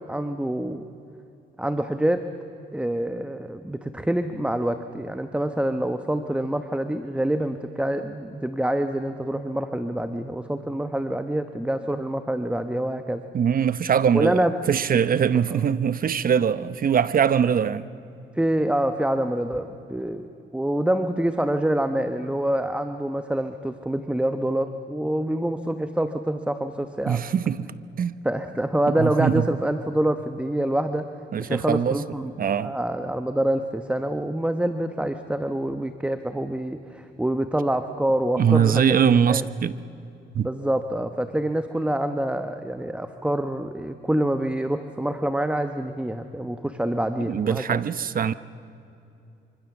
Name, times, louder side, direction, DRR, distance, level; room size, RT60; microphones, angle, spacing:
voice 1, 0.1-0.9 1.6-2.2 2.7-13.2 14.1-14.5 18.3-20.3 20.5-27.2 28.2-31.1 31.4-32.3 32.6-39.5 40.4-47.8, right 1 dB, 5° right, 1.0 m, -26 dB
voice 2, 13.3-17.9 27.1-28.2 29.0-29.5 31.3-32.0 32.4-32.7 38.4-39.8 40.3-40.5 47.3-48.3, right 8 dB, 45° right, 0.9 m, -22 dB
25.5 x 25.0 x 7.2 m
cardioid pair, 90°, 20 cm